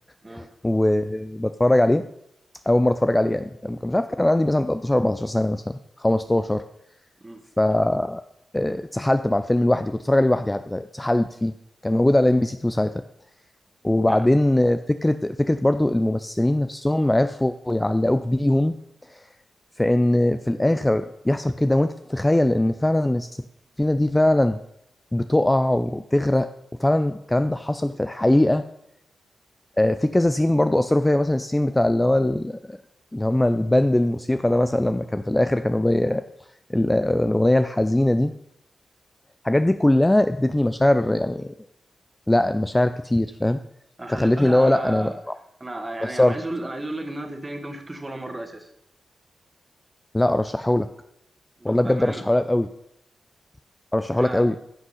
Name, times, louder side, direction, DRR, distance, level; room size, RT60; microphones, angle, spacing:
voice 1, 0.3-2.0 2.7-6.6 7.6-8.2 8.5-11.5 11.8-12.9 13.8-18.7 19.8-23.3 23.8-24.6 25.1-26.5 26.8-28.6 29.8-32.8 33.1-36.2 36.7-38.3 39.4-41.5 42.3-43.6 44.1-45.1 46.0-46.4 50.1-50.9 51.6-52.7 53.9-54.6, left 1 dB, 15° left, 10 dB, 0.4 m, -21 dB
voice 2, 44.0-45.2 45.6-48.7 51.6-52.3 54.1-54.5, right 1 dB, 25° right, 6 dB, 1.8 m, -34 dB
11.0 x 6.4 x 5.6 m, 0.77 s
cardioid pair, 70°, 0 cm